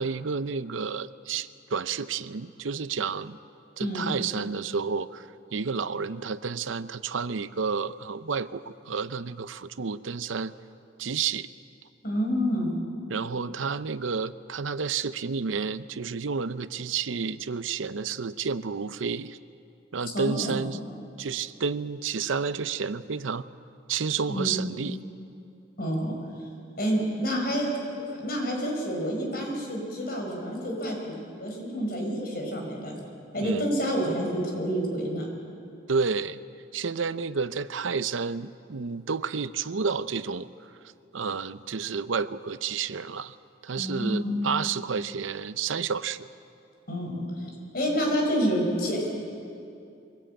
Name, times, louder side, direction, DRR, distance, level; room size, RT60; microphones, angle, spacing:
voice 1, 0.0-3.4 3.8-10.5 11.0-11.5 13.1-19.4 19.9-20.8 21.2-23.5 23.9-25.0 33.4-33.6 35.9-36.4 36.7-40.5 41.1-43.4 43.6-46.3, right 5 dB, 80° right, 14 dB, 0.6 m, -30 dB
voice 2, 12.0-12.7 20.1-20.6 24.3-24.5 25.8-26.5 26.8-27.7 28.2-32.9 33.3-35.3 43.8-44.3 46.9-49.1, equal, 50° left, 1 dB, 5.0 m, -28 dB
23.0 x 17.5 x 8.8 m, 2.6 s
head